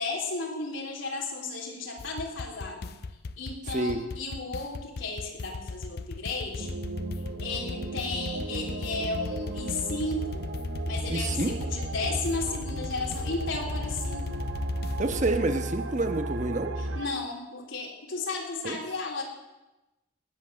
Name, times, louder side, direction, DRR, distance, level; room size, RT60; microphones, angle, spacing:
voice 1, 0.0-3.0 3.4-6.7 7.4-10.5 10.9-14.3 17.0-19.2, left 3 dB, 90° left, 0 dB, 3.6 m, -34 dB
sound 1, 2.0-15.4, left 3 dB, 55° left, 0.5 m, -38 dB
voice 2, 3.7-4.0 11.1-11.6 15.0-16.8 18.6-18.8, right 2 dB, 40° right, 7 dB, 1.1 m, -28 dB
sound 2, 6.6-17.1, right 1 dB, 75° right, 1.1 m, -35 dB
19.0 x 8.3 x 7.6 m, 1.0 s
head